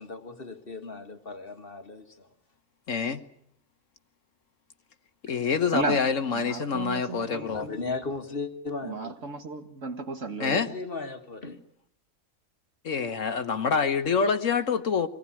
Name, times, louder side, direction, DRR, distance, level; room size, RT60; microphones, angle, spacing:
voice 1, 0.0-2.3 7.5-9.2 10.5-11.6, left 3 dB, 40° left, 1.9 m, -36 dB
voice 2, 2.9-3.2 5.2-7.7 10.4-10.7 12.8-15.1, left 5 dB, 60° left, 1.5 m, -26 dB
voice 3, 5.7-7.8 8.8-10.7, right 3 dB, 60° right, 2.2 m, -34 dB
25.0 x 18.5 x 9.9 m
omnidirectional pair, 1.5 m